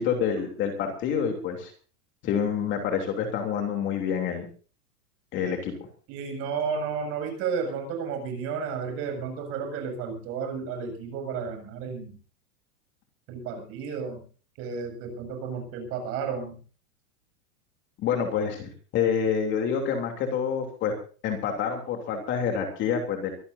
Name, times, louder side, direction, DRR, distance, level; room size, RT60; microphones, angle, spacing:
voice 1, 0.0-1.7 2.2-4.5 5.3-5.7 18.0-20.9 21.2-23.3, left 7 dB, 25° left, 4 dB, 3.2 m, -27 dB
voice 2, 6.1-12.2 13.3-14.2 14.6-16.6, right 6 dB, 30° right, 5 dB, 7.3 m, -32 dB
24.5 x 16.0 x 2.7 m, 0.40 s
supercardioid pair, 170°, 45 cm